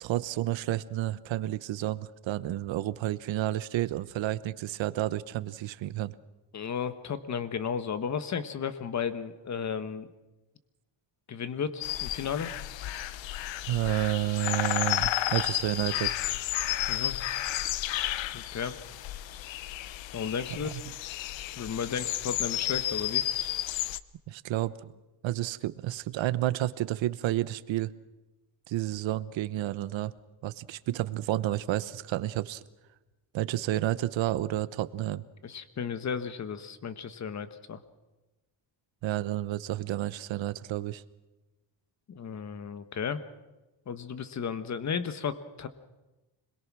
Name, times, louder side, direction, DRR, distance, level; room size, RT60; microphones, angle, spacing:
voice 1, 0.0-6.2 13.7-16.2 20.6-20.8 24.3-24.9 25.2-27.9 28.7-30.1 30.4-32.6 33.3-35.2 39.0-41.0, right 15 dB, 90° right, 16 dB, 1.0 m, -30 dB
voice 2, 6.5-10.1 11.3-12.5 16.9-17.2 18.3-18.8 20.1-20.8 21.6-23.2 35.4-37.8 42.1-43.2 43.9-45.7, left 7 dB, 40° left, 11 dB, 1.4 m, -34 dB
sound 1, 11.8-24.0, left 13 dB, 80° left, 0.8 m, -32 dB
26.0 x 21.5 x 6.2 m, 1.1 s
cardioid pair, 145°, 44 cm